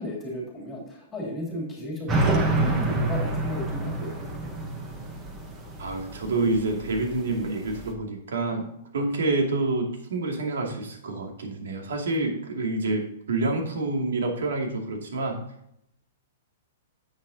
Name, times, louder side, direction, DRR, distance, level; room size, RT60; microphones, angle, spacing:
voice 1, 0.0-4.6, left 1 dB, 10° left, -2 dB, 2.8 m, -35 dB
sound 1, 2.1-7.9, right 2 dB, 10° right, 1.0 m, -28 dB
voice 2, 5.8-8.7 8.9-15.4, right 2 dB, 90° right, 1 dB, 2.4 m, -27 dB
10.5 x 8.0 x 2.8 m, 0.75 s
hypercardioid pair, 180°, 0 cm